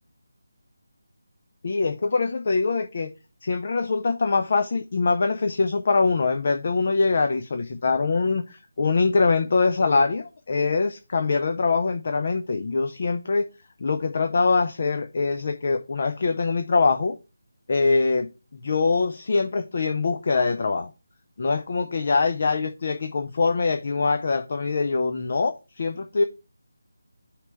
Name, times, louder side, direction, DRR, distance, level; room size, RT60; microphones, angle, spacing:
voice 1, 1.6-3.1 3.4-13.4 13.8-17.2 17.7-20.9 21.4-26.2, left 4 dB, 40° left, 8 dB, 0.6 m, -23 dB
5.8 x 3.3 x 5.8 m, 0.29 s
figure-of-eight pair, 155°, 0 cm